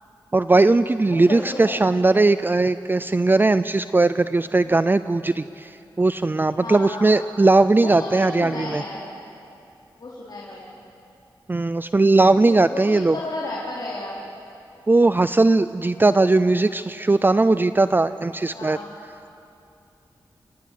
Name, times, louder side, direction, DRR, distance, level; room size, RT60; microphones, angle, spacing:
voice 1, 0.3-8.8 11.5-13.2 14.9-18.8, right 2 dB, 25° right, 13 dB, 0.5 m, -19 dB
voice 2, 1.1-1.8 6.6-7.1 7.8-9.1 10.0-10.7 12.4-14.2 18.5-19.0, left 2 dB, 55° left, -5 dB, 3.8 m, -33 dB
27.0 x 18.5 x 8.5 m, 2.7 s
wide cardioid pair, 80°, 8 cm